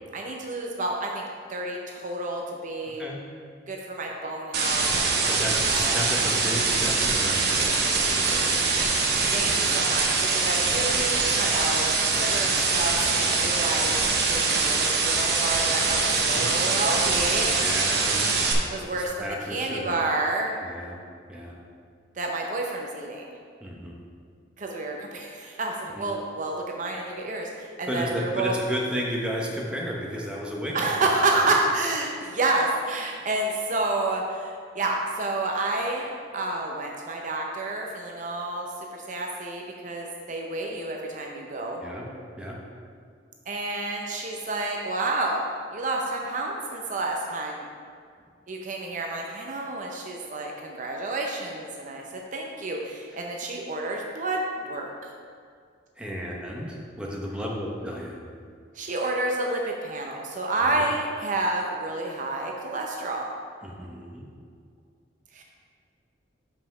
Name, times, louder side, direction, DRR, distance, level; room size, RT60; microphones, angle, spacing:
voice 1, 0.1-3.0 3.7-6.3 9.3-17.5 18.7-20.6 22.1-23.3 24.6-28.5 30.7-41.8 43.5-47.7 48.5-55.1 58.7-63.3 65.3-65.4, right 2 dB, 45° right, 1 dB, 0.6 m, -29 dB
sound 1, 4.5-18.5, right 4 dB, 60° right, 1.0 m, -23 dB
voice 2, 5.4-9.0 13.1-13.5 16.4-16.5 17.6-18.2 19.0-20.0 20.6-21.0 21.3-21.6 23.6-23.9 25.9-26.1 27.9-30.9 41.8-42.1 42.4-42.6 56.0-58.2 60.6-60.9 63.6-64.3, equal, 5° right, -3 dB, 0.9 m, -33 dB
5.6 x 5.4 x 6.0 m, 2.1 s
head